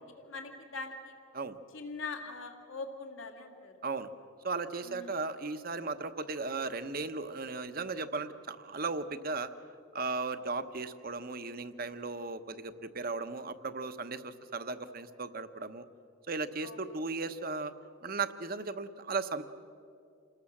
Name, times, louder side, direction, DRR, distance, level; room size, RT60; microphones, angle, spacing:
voice 1, 0.2-1.1 1.7-3.7 4.9-5.2 16.6-16.8, left 3 dB, 75° left, 4 dB, 2.2 m, -42 dB
voice 2, 4.4-9.5 9.9-15.8 16.3-17.7 18.0-19.4, right 3 dB, 45° right, 10 dB, 1.0 m, -36 dB
28.5 x 19.0 x 7.3 m, 2.5 s
head